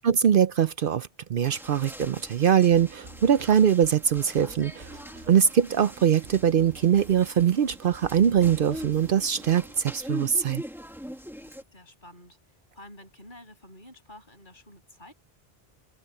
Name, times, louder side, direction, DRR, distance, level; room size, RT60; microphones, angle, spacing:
voice 1, 0.0-4.9 5.3-10.6, right 8 dB, 60° right, 0.8 m, -22 dB
sound 1, 1.4-11.6, equal, ahead, 1.6 m, -42 dB
sound 2, 2.7-9.8, right 3 dB, 90° right, 2.1 m, -49 dB
voice 2, 11.4-12.4 12.7-15.1, left 1 dB, 50° left, 7.4 m, -49 dB
omnidirectional pair, 1.1 m